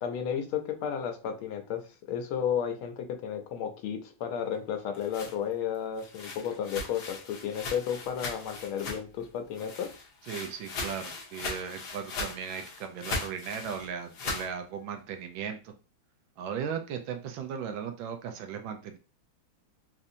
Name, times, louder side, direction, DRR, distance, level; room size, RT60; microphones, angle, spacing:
voice 1, 0.0-1.8 2.1-9.9, left 8 dB, 90° left, 5 dB, 1.5 m, -33 dB
sound 1, 4.7-9.2 9.5-14.5, left 3 dB, 60° left, 1.3 m, -39 dB
voice 2, 10.3-15.7 16.4-19.0, right 7 dB, 75° right, 6 dB, 1.3 m, -37 dB
4.2 x 2.6 x 2.6 m, 0.34 s
omnidirectional pair, 2.3 m